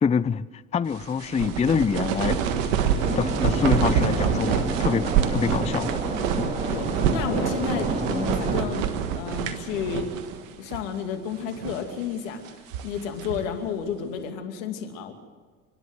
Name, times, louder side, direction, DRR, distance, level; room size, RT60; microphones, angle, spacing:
voice 1, 0.0-2.4 3.1-5.9 6.4-6.5, left 6 dB, 20° left, 17 dB, 0.5 m, -25 dB
sound 1, 0.9-10.4 10.7-10.8 11.4-11.9 12.5-13.6, right 8 dB, 85° right, 1.5 m, -26 dB
sound 2, 3.0-8.6, right 1 dB, 20° right, 4.3 m, -30 dB
voice 2, 6.7-8.9 9.1-10.1 10.6-12.5 12.8-15.1, left 8 dB, 80° left, 5 dB, 2.6 m, -31 dB
30.0 x 11.0 x 8.0 m, 1.5 s
hypercardioid pair, 70°, 38 cm